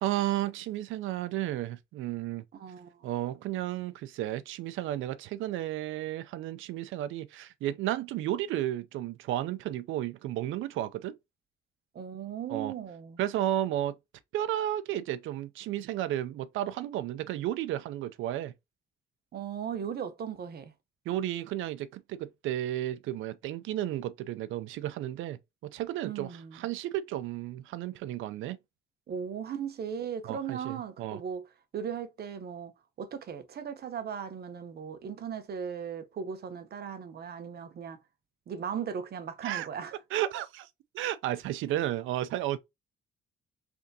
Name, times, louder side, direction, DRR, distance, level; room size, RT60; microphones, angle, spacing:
voice 1, 0.0-2.4 3.0-11.2 12.5-12.7 13.2-14.0 14.3-18.5 21.1-28.6 30.3-31.2 39.4-39.7 40.1-40.7 40.9-42.6, right 13 dB, 85° right, 0.5 m, -33 dB
voice 2, 2.5-3.1 11.9-13.2 19.3-20.7 26.0-26.7 29.1-31.5 31.7-32.7 33.0-38.0 38.5-40.0, right 7 dB, 55° right, 0.8 m, -37 dB
3.7 x 3.4 x 2.7 m
cardioid pair, 90°, 20 cm